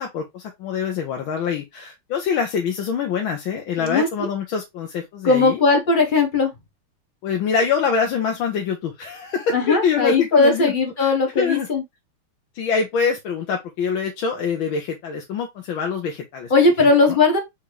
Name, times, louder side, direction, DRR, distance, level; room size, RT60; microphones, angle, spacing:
voice 1, 0.0-5.6 7.2-10.7 11.0-11.7 12.5-16.5 16.8-17.2, left 6 dB, 75° left, 1.6 m, -25 dB
voice 2, 3.8-4.3 5.2-6.5 9.5-11.8 16.5-17.4, left 3 dB, 40° left, 0.7 m, -18 dB
4.4 x 3.7 x 3.1 m
omnidirectional pair, 2.2 m